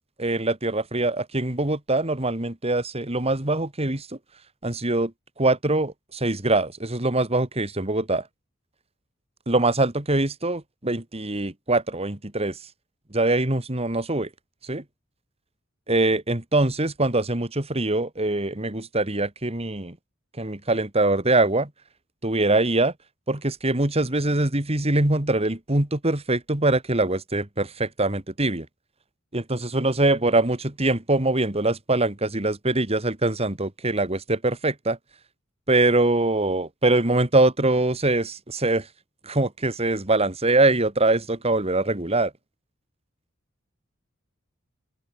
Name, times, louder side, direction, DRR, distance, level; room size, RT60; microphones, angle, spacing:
voice 1, 0.2-4.1 4.6-5.1 5.4-8.2 9.5-12.6 13.1-14.3 14.6-14.8 15.9-20.0 20.4-21.7 22.2-22.9 23.3-28.7 29.3-35.0 35.7-38.9 39.2-42.3, right 2 dB, 30° right, 2.4 m, -23 dB
open air
head